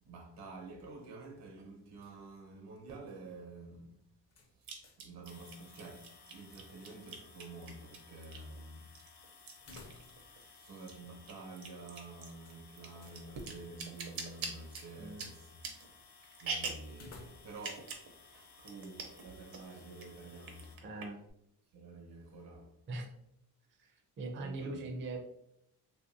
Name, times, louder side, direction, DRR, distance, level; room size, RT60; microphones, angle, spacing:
voice 1, 0.0-4.0 4.6-8.9 10.3-15.6 16.4-20.8 21.7-22.8 24.4-24.8, right 3 dB, 85° right, 1.0 m, -49 dB
sound 1, 2.9-3.0 4.6-8.6 9.0-10.5 10.8-16.9 17.5-18.1 18.4-18.5 18.6-19.2 19.5-20.1 20.4-21.3, right 4 dB, 65° right, 0.7 m, -43 dB
sound 2, 4.3-5.2 5.5-5.6 9.6-10.4 10.7-10.8 12.4-13.2 16.9-17.7, left 3 dB, 40° left, 0.5 m, -55 dB
sound 3, 5.3-20.7, left 5 dB, 80° left, 0.8 m, -59 dB
voice 2, 20.8-21.2 22.9-23.1 23.7-25.2, right 2 dB, 30° right, 0.4 m, -41 dB
3.0 x 2.6 x 2.6 m
cardioid pair, 145°, 39 cm